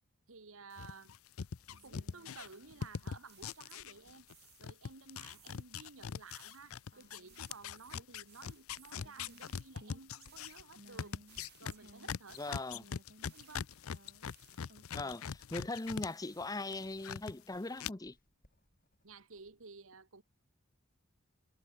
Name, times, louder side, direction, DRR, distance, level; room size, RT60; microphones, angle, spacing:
voice 1, 0.3-1.1 1.8-4.3 4.6-11.2 11.6-12.6 13.3-13.7 19.0-20.2, right 4 dB, 80° right, 1.6 m, -54 dB
sound 1, 0.8-4.3 4.6-16.1 16.4-17.3 17.8-17.9, left 7 dB, 85° left, 0.5 m, -42 dB
Writing, 1.0-19.6, equal, 40° left, 6.1 m, -71 dB
sound 2, 1.7-4.0 4.3-4.8 5.3-15.4 15.7-16.9, right 4 dB, 50° right, 4.1 m, -62 dB
voice 2, 12.4-12.8 14.9-18.2, left 2 dB, 15° left, 0.6 m, -40 dB
head